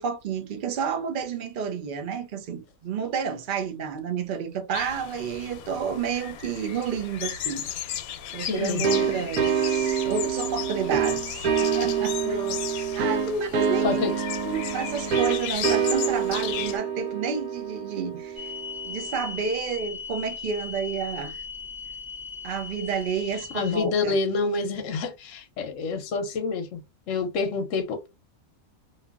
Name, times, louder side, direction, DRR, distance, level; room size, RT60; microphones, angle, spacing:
voice 1, 0.0-7.7 8.3-12.4 12.9-14.0 14.4-18.5 18.8-21.4 22.4-24.1, right 6 dB, 60° right, 0.5 m, -30 dB
sound 1, 4.7-16.8, left 10 dB, 90° left, 1.0 m, -35 dB
voice 2, 8.5-9.3 12.2-13.0 13.8-14.1 23.5-26.8 27.1-28.1, left 4 dB, 70° left, 0.9 m, -28 dB
sound 2, 8.8-19.3, right 7 dB, 85° right, 1.1 m, -27 dB
sound 3, 18.4-23.9, left 5 dB, ahead, 0.3 m, -38 dB
2.7 x 2.4 x 2.4 m
omnidirectional pair, 1.5 m